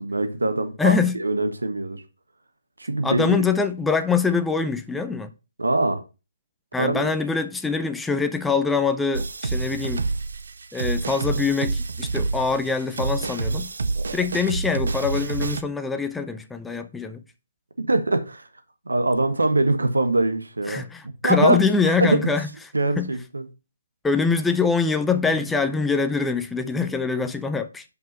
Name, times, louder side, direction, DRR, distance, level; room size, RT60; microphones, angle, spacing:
voice 1, 0.0-2.0 2.8-3.4 5.6-6.0 6.8-7.1 17.9-18.5 18.8-20.8 21.2-21.6 21.9-22.1 22.7-23.4, right 2 dB, 80° right, 1.5 m, -23 dB
voice 2, 0.8-1.2 3.0-5.3 6.7-10.0 10.7-13.7 14.1-17.2 20.7-22.5 23.0-23.1 24.0-27.8, left 5 dB, 5° left, 0.5 m, -24 dB
sound 1, 9.1-15.6, right 3 dB, 65° right, 0.7 m, -28 dB
5.5 x 5.5 x 5.5 m
figure-of-eight pair, 145°, 0 cm